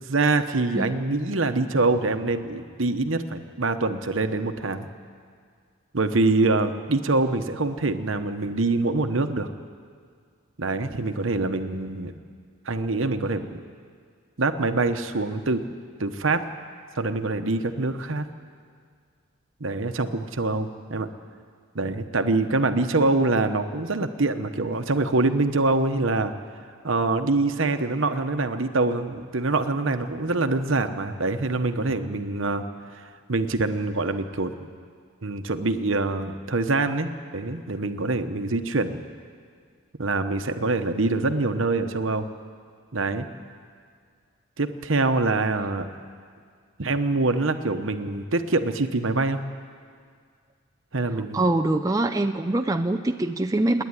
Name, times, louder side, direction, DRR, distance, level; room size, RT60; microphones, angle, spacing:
voice 1, 0.1-4.9 5.9-9.5 10.6-12.1 12.7-13.6 14.4-15.6 16.0-16.4 17.0-18.2 19.6-21.1 21.7-26.3 26.8-32.6 33.0-34.5 35.2-39.0 40.0-42.3 42.9-43.3 44.6-45.9 46.8-49.4 50.9-51.5, right 3 dB, 65° right, 8 dB, 1.1 m, -25 dB
voice 2, 51.3-53.8, right 2 dB, 15° right, 7 dB, 0.5 m, -24 dB
26.5 x 10.5 x 9.7 m, 2.1 s
head